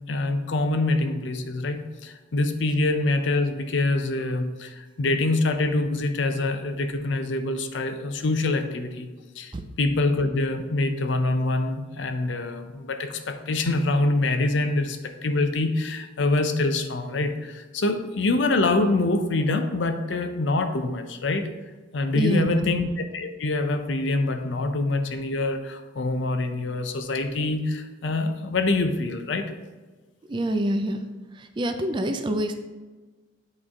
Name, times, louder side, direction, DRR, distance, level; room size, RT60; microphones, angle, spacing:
voice 1, 0.1-9.1 9.4-21.5 21.9-29.5, left 2 dB, 65° left, 8 dB, 0.5 m, -25 dB
voice 2, 22.1-22.7 30.3-31.0 31.4-32.6, right 1 dB, 25° right, 7 dB, 0.4 m, -26 dB
8.5 x 3.2 x 3.6 m, 1.3 s
head